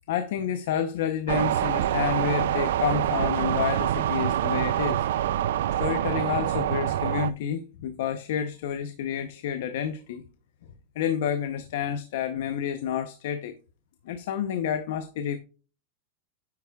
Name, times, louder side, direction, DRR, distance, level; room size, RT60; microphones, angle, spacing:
voice 1, 0.1-5.0 5.8-10.2 11.0-13.5 14.0-15.4, left 8 dB, 60° left, 0.7 m, -29 dB
sound 1, 1.3-7.3, right 11 dB, 75° right, 0.4 m, -26 dB
9.6 x 8.1 x 2.3 m
supercardioid pair, 170°, 0 cm